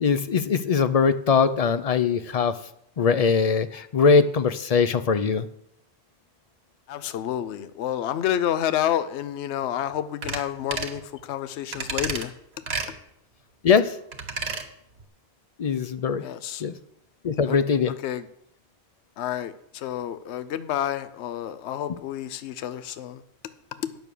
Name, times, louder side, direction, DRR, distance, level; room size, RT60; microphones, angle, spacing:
voice 1, 0.0-2.6 3.0-5.5 13.6-13.9 15.6-16.2 16.6-16.7 17.2-17.9, left 5 dB, 50° left, 12 dB, 0.4 m, -21 dB
voice 2, 6.9-11.0 11.3-12.3 16.2-16.6 17.5-17.6 18.0-18.2 19.2-23.2, left 11 dB, 80° left, 13 dB, 0.9 m, -29 dB
sound 1, 10.2-10.4 10.7-11.0 11.7-12.3 12.7-12.9 14.1-14.7 15.0-15.1, right 4 dB, 85° right, 1.4 m, -30 dB
9.2 x 6.1 x 6.8 m, 0.74 s
omnidirectional pair, 1.1 m